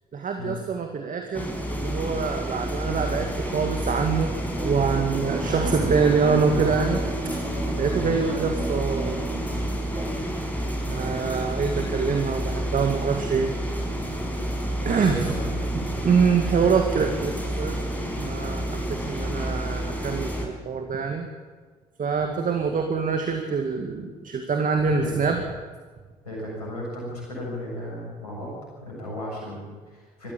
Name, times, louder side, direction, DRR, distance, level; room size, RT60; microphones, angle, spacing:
voice 1, 0.1-7.1 7.8-9.3 10.9-13.5 14.9-15.3 16.0-17.8 18.2-21.3 22.0-25.4, right 5 dB, 45° right, 4 dB, 2.1 m, -25 dB
sound 1, 1.3-20.5, equal, 10° left, 5.3 m, -29 dB
sound 2, 4.6-10.2, right 3 dB, 25° right, 2.9 m, -33 dB
voice 2, 14.8-15.7 25.0-25.4 26.2-28.5 28.8-30.3, left 1 dB, 85° left, -3 dB, 7.3 m, -35 dB
21.0 x 14.5 x 8.6 m, 1.5 s
figure-of-eight pair, 45°, 20 cm